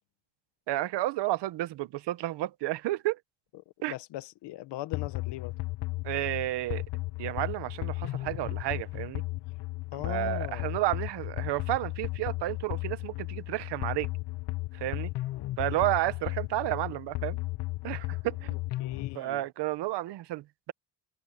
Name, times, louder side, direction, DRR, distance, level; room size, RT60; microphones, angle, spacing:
voice 1, 0.7-3.2 3.8-3.9 6.0-6.8 7.2-9.2 10.0-14.1 14.7-15.1 15.6-17.4 17.8-18.6 19.1-20.7, right 16 dB, 85° right, 1.3 m, -31 dB
voice 2, 3.9-5.5 9.9-10.8 15.7-15.8 18.5-19.4, left 15 dB, 90° left, 1.3 m, -40 dB
sound 1, 4.9-19.2, left 20 dB, 70° left, 0.9 m, -35 dB
cardioid pair, 100°, 40 cm